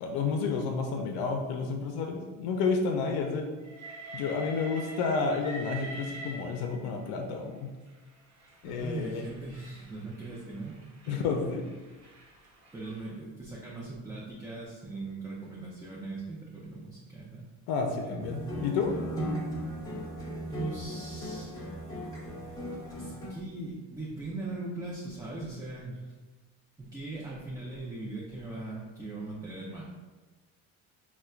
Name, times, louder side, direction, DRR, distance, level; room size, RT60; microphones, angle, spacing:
voice 1, 0.0-3.5 4.1-7.7 8.6-9.3 11.1-11.6 17.7-18.9, left 4 dB, 75° left, 3 dB, 0.5 m, -30 dB
Train, 3.6-7.0 7.9-13.1, right 1 dB, 45° right, 1.0 m, -46 dB
voice 2, 8.6-11.6 12.7-17.5 18.0-18.2 20.5-21.7 23.0-26.1 26.8-29.8, right 2 dB, 10° right, -6 dB, 0.5 m, -40 dB
sound 1, 18.2-23.3, equal, 10° left, 1.0 m, -37 dB
4.2 x 2.2 x 2.3 m, 1.3 s
supercardioid pair, 95°, 41 cm